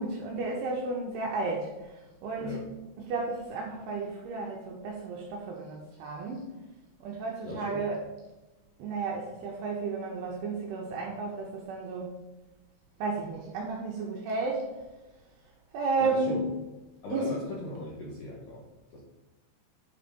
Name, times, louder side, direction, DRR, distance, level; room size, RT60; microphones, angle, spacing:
voice 1, 0.0-2.6 3.0-6.5 7.0-8.1 8.8-12.1 13.0-14.7 15.7-16.7 17.1-17.4, right 3 dB, 75° right, -1 dB, 2.4 m, -33 dB
voice 2, 7.4-7.8 16.0-16.5 17.0-19.0, left 1 dB, 75° left, -4 dB, 2.1 m, -39 dB
9.1 x 4.1 x 5.2 m, 1.1 s
omnidirectional pair, 5.7 m